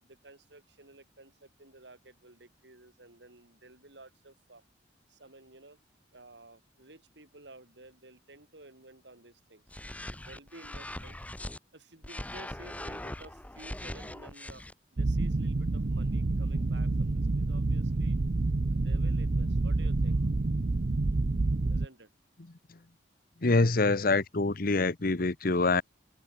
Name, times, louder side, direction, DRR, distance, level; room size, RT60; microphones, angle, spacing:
voice 1, 0.0-4.6 5.1-5.8 6.1-9.6 10.2-11.2 11.7-14.6 14.9-18.2 18.7-20.3 21.7-22.1, right 2 dB, 70° right, 3.6 m, -53 dB
sound 1, 9.7-11.6 12.0-14.7, left 1 dB, 10° left, 0.9 m, -41 dB
sound 2, 15.0-21.9, right 2 dB, 50° right, 0.7 m, -28 dB
voice 2, 23.4-25.8, left 3 dB, 50° left, 1.0 m, -25 dB
open air
head